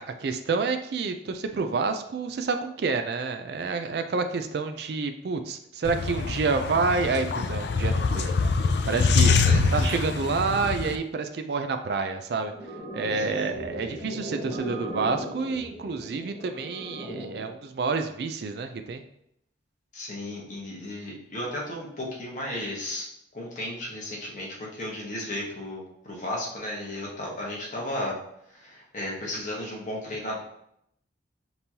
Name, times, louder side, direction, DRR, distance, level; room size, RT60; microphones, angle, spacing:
voice 1, 0.0-8.4 8.8-9.3 9.7-12.5 12.9-19.0, right 4 dB, 55° right, 7 dB, 0.4 m, -28 dB
sound 1, 5.8-11.0, left 4 dB, 60° left, 0.3 m, -24 dB
voice 2, 9.4-9.8 13.1-13.5 19.9-23.1 23.3-28.2 28.5-30.4, left 1 dB, 40° left, -4 dB, 1.1 m, -34 dB
sound 2, 12.5-17.5, right 1 dB, 15° right, 1.0 m, -38 dB
5.2 x 3.0 x 2.8 m, 0.74 s
head